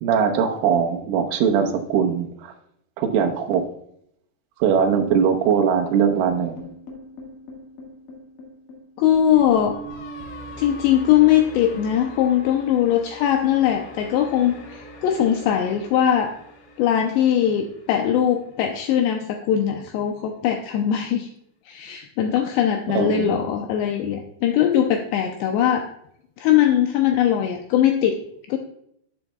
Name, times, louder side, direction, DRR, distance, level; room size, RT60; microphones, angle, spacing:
voice 1, 0.0-2.5 3.0-3.6 4.6-6.6 22.9-23.4, right 7 dB, 85° right, 3 dB, 3.5 m, -21 dB
sound 1, 6.3-18.5, equal, 65° left, 2.2 m, -41 dB
voice 2, 9.0-9.8 10.6-16.3 16.8-21.3 21.7-25.9 26.4-28.2 28.5-28.6, left 10 dB, 85° left, 4 dB, 2.5 m, -20 dB
12.5 x 7.0 x 2.2 m, 0.72 s
omnidirectional pair, 5.5 m